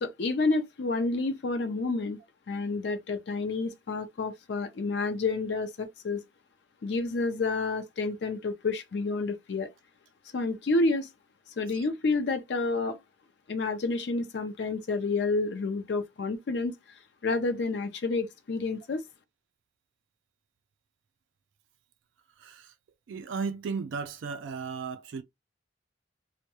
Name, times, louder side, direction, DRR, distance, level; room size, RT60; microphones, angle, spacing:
voice 1, 0.0-2.2 2.5-6.2 6.8-9.7 10.3-11.1 11.6-13.0 13.5-16.7 17.2-19.0, left 3 dB, 65° left, 0.4 m, -29 dB
voice 2, 22.4-22.7 23.1-25.2, right 5 dB, 80° right, 0.3 m, -35 dB
2.2 x 2.1 x 2.8 m
head